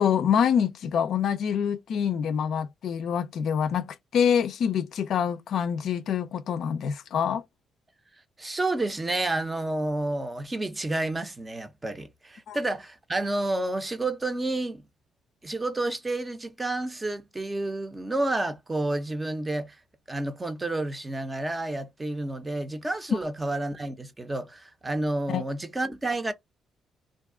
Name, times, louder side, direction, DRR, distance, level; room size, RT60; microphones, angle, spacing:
voice 1, 0.0-7.4 12.5-12.6 25.3-25.4, left 8 dB, 70° left, 0.4 m, -26 dB
voice 2, 8.4-14.8 15.4-19.8 20.1-26.3, right 2 dB, 20° right, 0.6 m, -30 dB
2.5 x 2.3 x 3.6 m
cardioid pair, 90°, 0 cm